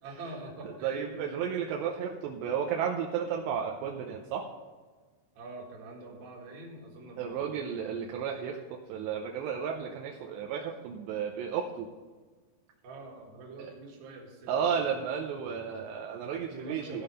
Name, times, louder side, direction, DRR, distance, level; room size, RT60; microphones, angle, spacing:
voice 1, 0.0-1.0 5.3-7.4 12.8-14.7 16.3-17.0, right 2 dB, 60° right, -1 dB, 3.3 m, -45 dB
voice 2, 0.8-4.4 7.2-8.6 8.9-11.9 13.6-13.7 14.5-17.0, right 7 dB, 80° right, 0 dB, 2.7 m, -33 dB
15.0 x 5.7 x 5.6 m, 1.4 s
omnidirectional pair, 5.4 m